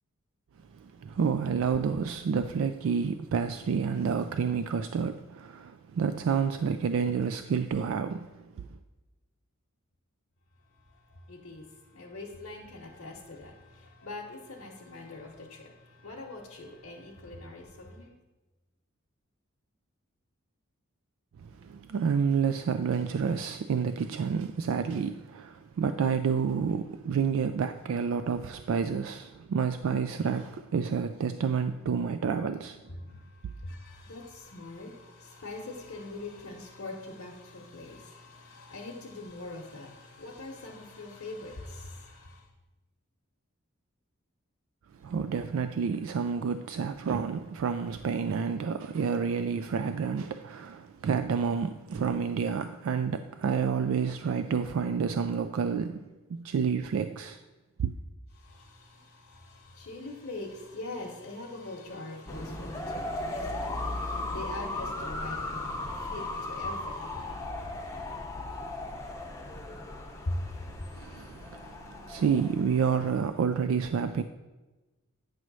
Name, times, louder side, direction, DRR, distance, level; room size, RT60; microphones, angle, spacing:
voice 1, 0.7-8.3 8.6-8.7 21.4-32.8 45.0-57.4 57.8-57.9 70.9-74.2, right 6 dB, 65° right, 0.3 m, -29 dB
voice 2, 11.3-18.1 33.1-42.5 58.4-67.9 70.3-70.5 70.8-70.9, left 2 dB, 60° left, 0.9 m, -42 dB
sound 1, 62.3-73.1, left 2 dB, 15° left, 0.6 m, -37 dB
9.0 x 3.1 x 6.1 m
head